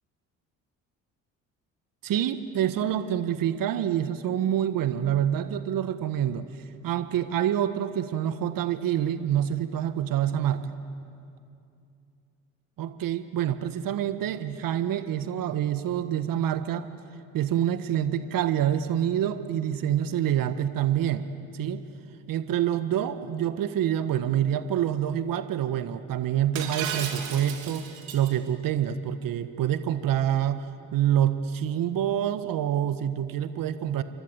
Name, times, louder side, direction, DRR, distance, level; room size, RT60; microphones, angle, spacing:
voice 1, 2.0-6.5 6.8-10.8 12.8-16.9 17.3-21.3 21.5-21.8 22.3-27.9 28.1-30.7 30.9-34.0, right 10 dB, 55° right, 11 dB, 1.6 m, -26 dB
Shatter, 26.6-28.3, right 8 dB, 85° right, 2.9 m, -34 dB
28.5 x 25.0 x 8.2 m, 2.6 s
hypercardioid pair, 60°, 39 cm